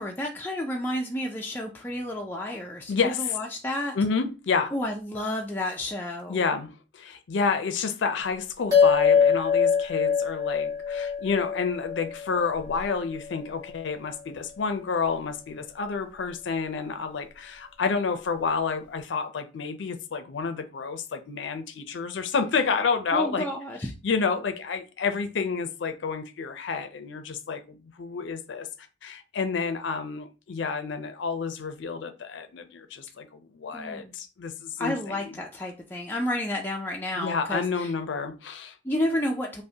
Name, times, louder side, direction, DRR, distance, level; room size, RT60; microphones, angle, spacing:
voice 1, 0.0-3.9 4.7-6.4 23.1-23.9 33.7-34.1 34.8-37.9 38.8-39.6, left 1 dB, 10° left, 0.3 m, -31 dB
voice 2, 2.9-3.4 3.9-4.7 6.3-23.5 24.0-28.7 29.0-35.1 37.2-38.8, left 5 dB, 75° left, 0.4 m, -29 dB
sound 1, 8.7-13.4, left 6 dB, 20° right, 1.8 m, -24 dB
5.1 x 2.1 x 2.7 m
head